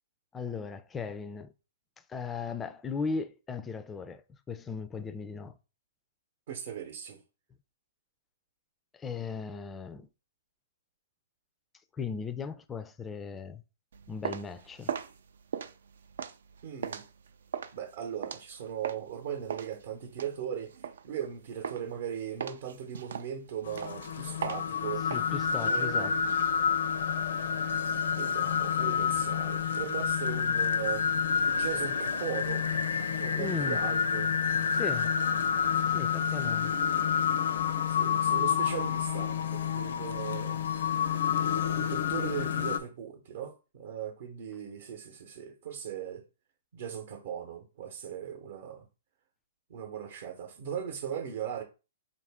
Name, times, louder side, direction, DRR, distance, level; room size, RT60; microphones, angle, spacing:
voice 1, 0.3-1.5 2.1-5.6 8.9-10.1 11.9-13.6 14.1-15.0 25.1-26.2 33.3-33.8 34.7-35.2 35.8-36.7, left 5 dB, 15° left, 0.3 m, -37 dB
voice 2, 6.5-7.2 16.6-17.1 17.7-25.0 25.6-26.2 28.2-31.1 31.4-32.7 33.1-34.3 37.9-40.6 41.3-46.3 46.7-48.8 49.7-51.6, right 9 dB, 55° right, 0.8 m, -38 dB
sound 1, 13.9-19.1 19.5-21.3 21.6-22.0 22.4-25.2, right 7 dB, 75° right, 0.4 m, -38 dB
sound 2, 23.6-42.8, left 7 dB, 70° left, 0.5 m, -29 dB
4.0 x 2.5 x 3.5 m
hypercardioid pair, 140°, 0 cm